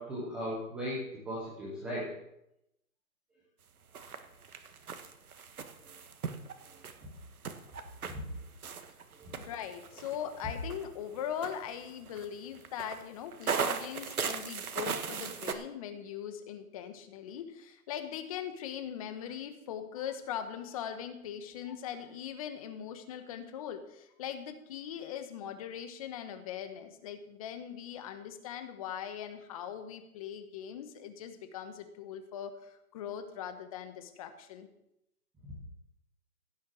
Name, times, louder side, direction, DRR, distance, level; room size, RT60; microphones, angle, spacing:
voice 1, 0.0-2.0 5.8-5.9 6.7-6.8 9.1-9.4 35.4-35.5, equal, ahead, -7 dB, 0.6 m, -38 dB
sound 1, 3.9-15.5, right 6 dB, 70° right, 1.7 m, -38 dB
voice 2, 9.4-34.7, left 9 dB, 25° left, 8 dB, 1.1 m, -40 dB
16.5 x 7.1 x 6.3 m, 0.83 s
hypercardioid pair, 150°, 45 cm